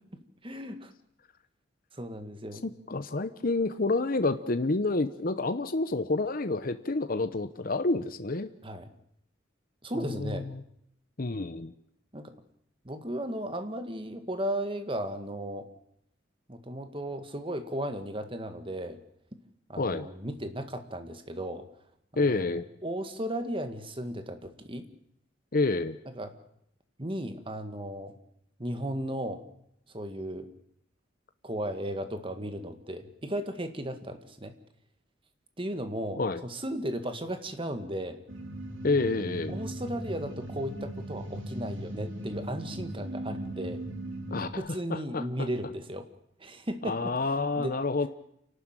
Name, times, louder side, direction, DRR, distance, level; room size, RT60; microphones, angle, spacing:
voice 1, 0.4-0.9 1.9-2.7 8.6-8.8 9.8-10.5 12.1-12.3 12.9-15.7 16.5-19.0 19.7-21.7 22.1-24.9 26.0-26.3 27.0-28.2 28.6-29.4 29.9-30.5 31.4-34.5 35.6-38.2 39.5-43.8 44.6-46.1 46.4-48.1, right 1 dB, 25° right, 8 dB, 1.9 m, -35 dB
voice 2, 2.6-8.5 9.9-10.6 11.2-11.7 19.8-20.1 22.2-22.6 25.5-26.0 36.2-36.4 38.8-39.6 44.3-45.5 46.8-48.1, left 3 dB, 50° left, 10 dB, 0.9 m, -29 dB
sound 1, 38.3-44.5, right 1 dB, 90° right, 3.3 m, -38 dB
28.0 x 12.5 x 9.1 m, 0.74 s
head